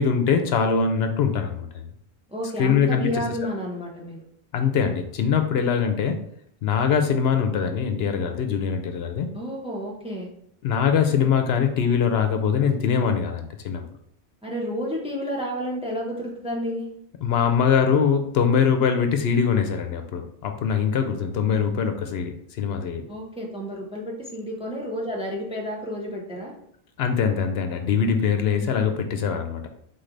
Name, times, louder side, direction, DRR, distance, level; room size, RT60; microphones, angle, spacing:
voice 1, 0.0-1.8 2.6-3.2 4.5-6.2 6.6-9.3 10.6-13.8 17.2-23.0 27.0-29.7, left 6 dB, 75° left, 6 dB, 0.8 m, -22 dB
voice 2, 2.3-4.2 9.3-10.3 14.4-16.9 23.1-26.5, equal, 5° right, -2 dB, 0.7 m, -31 dB
4.1 x 3.2 x 3.8 m, 0.68 s
omnidirectional pair, 1.1 m